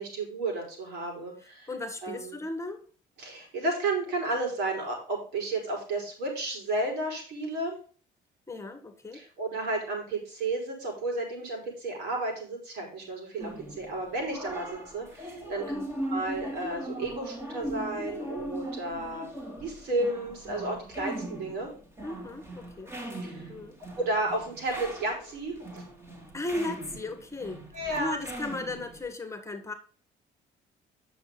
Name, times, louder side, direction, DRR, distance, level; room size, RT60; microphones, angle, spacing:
voice 1, 0.0-1.7 2.0-2.4 3.2-7.8 9.1-15.7 16.1-19.3 19.6-21.7 23.2-23.5 24.0-25.8 27.7-28.2, right 2 dB, 75° right, 1 dB, 5.6 m, -32 dB
voice 2, 1.4-2.8 8.5-9.2 15.6-15.9 22.0-22.9 23.5-23.8 26.3-27.6 27.9-29.7, left 2 dB, 15° left, 8 dB, 1.6 m, -36 dB
sound 1, 13.4-29.1, right 1 dB, 15° right, 2.8 m, -39 dB
9.4 x 7.0 x 3.9 m, 0.41 s
cardioid pair, 110°, 17 cm